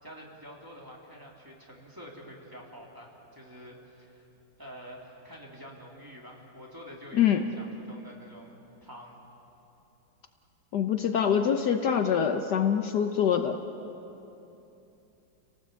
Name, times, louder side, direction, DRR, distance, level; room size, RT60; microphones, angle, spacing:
voice 1, 0.0-4.3 4.6-8.5 8.8-9.2, equal, 10° right, -2 dB, 3.2 m, -47 dB
voice 2, 7.1-7.4 10.7-13.6, left 8 dB, 65° left, 6 dB, 1.4 m, -25 dB
30.0 x 18.0 x 8.2 m, 3.0 s
omnidirectional pair, 2.0 m